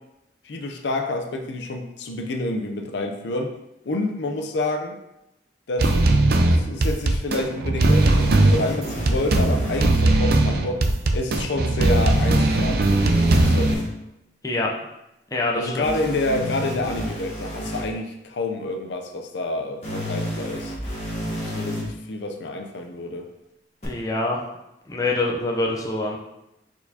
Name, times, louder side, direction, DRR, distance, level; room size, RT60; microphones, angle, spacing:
voice 1, 0.4-3.5 3.9-5.0 5.7-6.0 6.3-10.8 11.1-13.0 13.4-13.9 15.5-20.7 21.5-23.3, left 2 dB, 70° left, 4 dB, 0.5 m, -28 dB
sound 1, 5.8-13.7, right 2 dB, 55° right, 0.4 m, -19 dB
sound 2, 7.8-9.8 11.8-13.8 15.8-17.8 19.8-21.8 23.8-23.9, equal, 35° left, 1.3 m, -30 dB
voice 2, 15.3-15.9 23.8-24.4 24.9-26.2, left 2 dB, 20° left, -1 dB, 0.5 m, -25 dB
4.4 x 4.4 x 2.7 m, 0.89 s
head